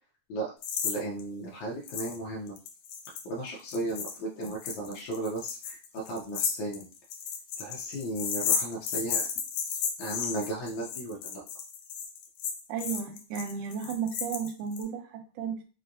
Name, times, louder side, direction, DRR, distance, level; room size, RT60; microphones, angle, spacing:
sound 1, 0.6-0.9 1.2-1.3 1.9-2.2 2.5-14.8, left 7 dB, 90° left, 2.1 m, -33 dB
voice 1, 0.8-2.6 3.3-6.9 7.6-9.3 10.0-11.4, right 1 dB, 75° left, -3 dB, 2.1 m, -35 dB
voice 2, 12.7-15.6, right 7 dB, 85° right, 6 dB, 2.1 m, -34 dB
5.7 x 2.2 x 2.5 m, 0.36 s
omnidirectional pair, 3.4 m